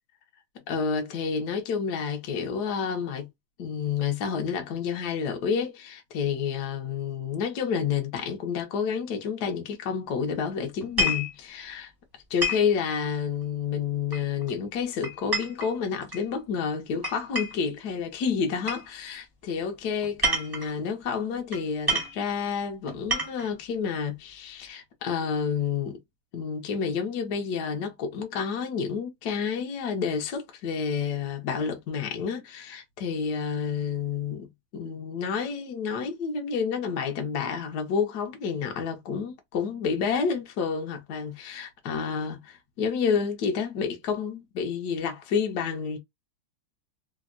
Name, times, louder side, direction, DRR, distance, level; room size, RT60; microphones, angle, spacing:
voice 1, 0.7-3.3 3.6-11.9 12.3-26.0 26.3-34.5 34.7-46.0, left 6 dB, 65° left, 1.0 m, -29 dB
sound 1, 10.8-11.3 12.4-12.7 14.1-14.5 15.0-16.2 17.0-17.7 18.7-18.8 20.0-20.7 21.5-21.6 21.9-22.2 22.9-23.5, equal, 25° right, 0.5 m, -28 dB
3.4 x 2.0 x 2.3 m
omnidirectional pair, 2.3 m